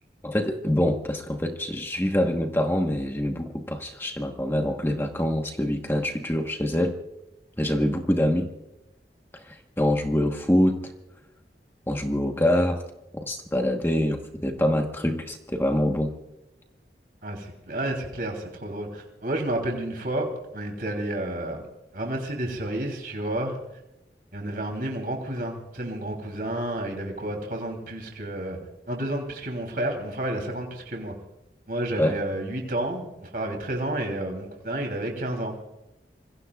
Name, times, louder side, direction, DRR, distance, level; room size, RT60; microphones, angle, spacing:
voice 1, 0.2-6.9 7.6-8.5 9.3-10.9 11.9-12.8 13.1-16.1 32.0-32.2, left 1 dB, 15° left, 3 dB, 1.2 m, -25 dB
voice 2, 17.2-20.3 20.5-21.6 21.9-23.6 24.3-28.6 28.9-31.1 31.7-35.5, right 1 dB, 55° right, 2 dB, 3.1 m, -30 dB
26.5 x 21.5 x 2.4 m, 0.92 s
head